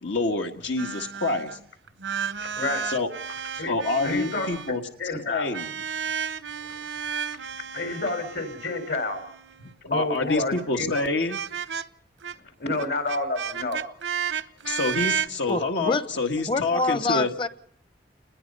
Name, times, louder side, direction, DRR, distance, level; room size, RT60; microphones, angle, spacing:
voice 1, 0.0-1.6 2.8-3.1 3.7-4.8 5.3-5.7 9.6-11.4 14.6-17.3, left 3 dB, 85° left, 1.7 m, -27 dB
sound 1, 0.8-1.6 1.9-4.8 5.5-9.7 10.5-10.6 10.9-11.0 11.3-11.8 12.2-12.3 12.7-15.3, right 7 dB, 85° right, 0.9 m, -32 dB
voice 2, 2.4-2.8 3.6-3.8 4.0-4.5 5.0-5.5 6.7-6.8 7.7-9.2 9.8-10.9 12.6-13.8, left 2 dB, 70° left, 4.7 m, -29 dB
voice 3, 15.5-16.0 16.5-17.5, left 3 dB, 30° left, 0.8 m, -26 dB
29.5 x 21.0 x 5.5 m
head